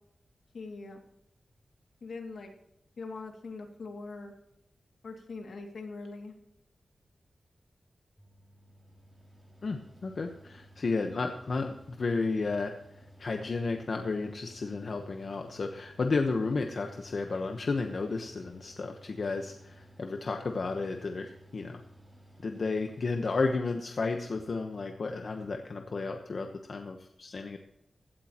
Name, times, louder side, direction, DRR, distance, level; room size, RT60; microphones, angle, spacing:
voice 1, 0.5-1.0 2.0-2.5 3.0-4.3 5.0-6.3, left 3 dB, 80° left, 3 dB, 2.4 m, -42 dB
Mechanical fan, 8.2-23.6, equal, 10° right, 3.0 m, -56 dB
voice 2, 9.6-12.7 13.2-21.8 22.4-27.6, left 3 dB, 55° left, 4 dB, 1.1 m, -32 dB
16.5 x 13.0 x 3.0 m, 0.83 s
wide cardioid pair, 135°, 0 cm